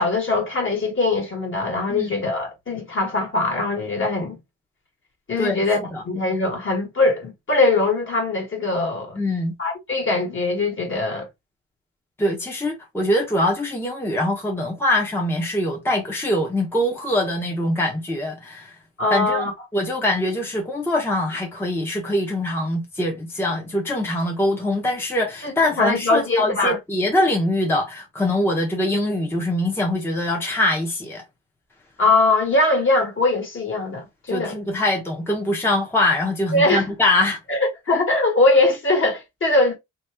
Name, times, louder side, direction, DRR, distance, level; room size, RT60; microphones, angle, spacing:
voice 1, 0.0-4.4 5.3-5.8 6.0-9.2 9.6-11.3 19.0-19.5 25.4-26.8 32.0-34.6 36.5-36.8 37.5-39.7, left 2 dB, 40° left, 1.5 m, -21 dB
voice 2, 9.2-9.5 12.2-18.7 19.1-19.4 19.7-31.2 34.3-37.4, left 1 dB, 10° left, 0.8 m, -23 dB
2.9 x 2.3 x 3.4 m
cardioid pair, 90°, 30 cm